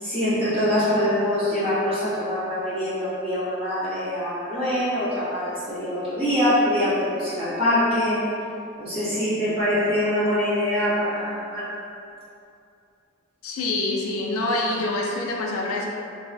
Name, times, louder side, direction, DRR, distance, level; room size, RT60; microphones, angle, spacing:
voice 1, 0.0-8.2 8.8-11.7, left 1 dB, 30° right, -12 dB, 0.9 m, -24 dB
voice 2, 13.4-15.9, left 2 dB, 85° left, -1 dB, 0.4 m, -26 dB
3.1 x 2.2 x 2.4 m, 2.5 s
head